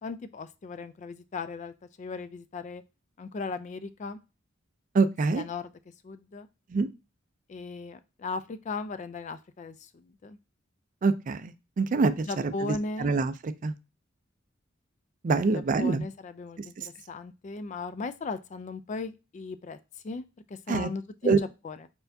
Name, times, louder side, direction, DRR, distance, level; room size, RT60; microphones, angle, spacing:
voice 1, 0.0-2.8 3.2-4.2 5.4-5.7 6.0-6.5 7.5-10.4 12.3-13.1 15.5-19.8 20.0-21.9, left 3 dB, 35° left, 12 dB, 0.3 m, -37 dB
voice 2, 4.9-5.4 6.7-6.9 11.0-12.2 12.7-13.3 13.6-13.7 15.2-16.0 20.7-20.9 21.2-21.4, right 4 dB, 40° right, 13 dB, 0.4 m, -25 dB
4.4 x 4.4 x 2.6 m, 0.28 s
head